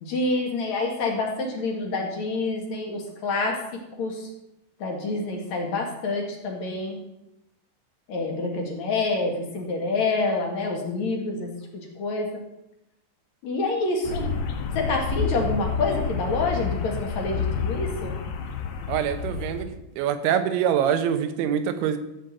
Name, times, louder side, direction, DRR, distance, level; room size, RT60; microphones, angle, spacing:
voice 1, 0.0-4.2 4.8-7.0 8.1-12.3 13.4-14.3 14.7-18.2, left 3 dB, 55° left, 1 dB, 2.3 m, -27 dB
sound 1, 14.0-19.7, left 6 dB, 90° left, 4.1 m, -29 dB
voice 2, 18.9-19.7 20.0-22.0, right 9 dB, 85° right, 9 dB, 3.3 m, -24 dB
14.0 x 5.3 x 7.9 m, 0.87 s
omnidirectional pair, 5.3 m